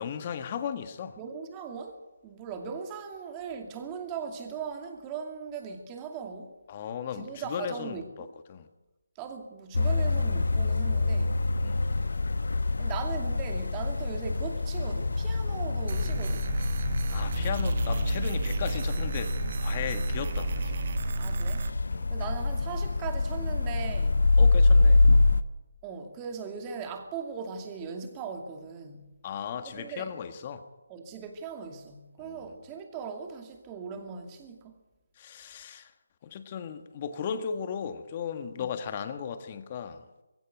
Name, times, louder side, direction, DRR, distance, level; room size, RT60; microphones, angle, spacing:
voice 1, 0.0-1.2 6.7-8.7 11.6-11.9 17.1-20.8 21.9-22.1 24.4-25.1 29.2-30.7 32.2-32.4 35.2-35.9 36.2-40.1, left 7 dB, 30° left, 9 dB, 1.5 m, -36 dB
voice 2, 1.2-6.5 7.1-8.0 9.2-11.4 12.8-16.5 21.2-21.7 22.1-24.2 25.8-29.0 29.6-30.1 30.9-34.7 38.6-38.7, right 6 dB, 15° right, 4 dB, 2.5 m, -39 dB
sound 1, 9.7-25.4, left 3 dB, 65° left, 0.9 m, -26 dB
sound 2, 15.9-21.7, right 6 dB, 40° right, 1.1 m, -33 dB
22.0 x 16.0 x 8.1 m, 1.1 s
figure-of-eight pair, 155°, 0 cm